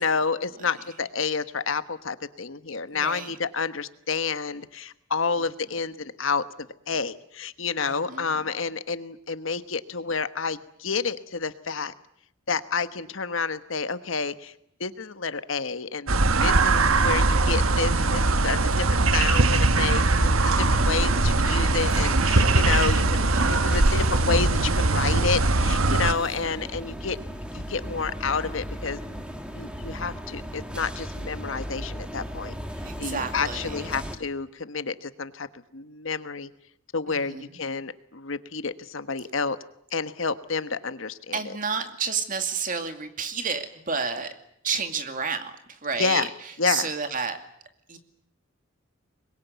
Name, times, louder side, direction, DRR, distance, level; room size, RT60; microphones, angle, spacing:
voice 1, 0.0-11.9 12.5-14.5 14.8-16.1 16.4-27.2 27.5-29.0 29.5-32.5 33.0-35.5 35.7-36.5 36.9-39.6 39.9-41.5 46.0-46.3 46.6-46.9, left 5 dB, 70° left, 12 dB, 1.3 m, -29 dB
voice 2, 2.9-3.4 7.8-8.3 19.3-19.5 20.5-20.9 23.2-23.7 25.9-26.5 32.8-33.8 37.1-37.6 41.3-44.3 44.6-46.3 46.6-47.4 47.9-48.0, right 5 dB, 40° right, 7 dB, 2.4 m, -31 dB
sound 1, 16.1-26.1, right 2 dB, 85° right, 1.3 m, -21 dB
sound 2, 20.6-34.2, equal, 5° right, 2.2 m, -37 dB
25.0 x 22.0 x 9.3 m, 0.74 s
head